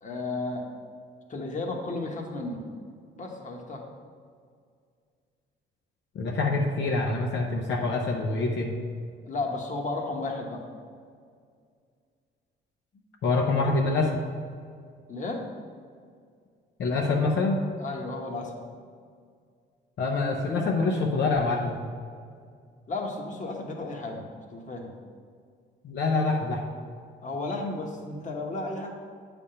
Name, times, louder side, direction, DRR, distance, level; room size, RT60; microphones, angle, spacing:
voice 1, 0.0-0.7 1.3-2.6 3.1-3.8 9.2-10.7 15.1-15.4 17.8-18.5 22.9-25.0 27.2-28.9, left 2 dB, 40° left, 1 dB, 1.2 m, -33 dB
voice 2, 6.1-8.7 13.2-14.2 16.8-17.6 20.0-21.8 25.8-26.6, left 3 dB, 65° left, -1 dB, 0.8 m, -25 dB
8.4 x 3.6 x 5.6 m, 2.1 s
cardioid pair, 90°, 20 cm